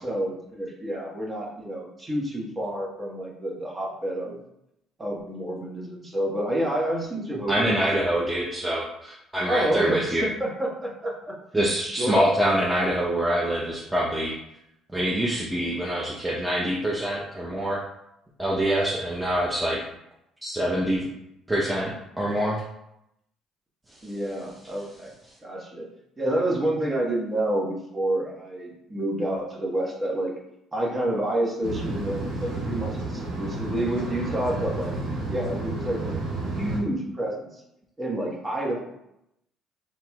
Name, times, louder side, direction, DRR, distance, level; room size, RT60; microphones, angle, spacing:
voice 1, 0.0-4.4 5.0-7.5 8.1-8.3 8.6-8.8 9.4-12.3 24.0-25.1 25.4-25.9 26.2-30.3 30.7-34.9 35.3-36.2 36.5-37.6 38.0-38.9, right 1 dB, 30° right, -2 dB, 1.4 m, -29 dB
voice 2, 7.5-10.3 11.5-14.3 14.9-17.8 18.4-19.8 20.4-21.1 21.5-22.6, right 1 dB, 10° right, -5 dB, 0.8 m, -25 dB
sound 1, 31.6-36.8, right 2 dB, 85° right, 1.1 m, -31 dB
4.2 x 3.8 x 2.4 m, 0.81 s
supercardioid pair, 70°, 0 cm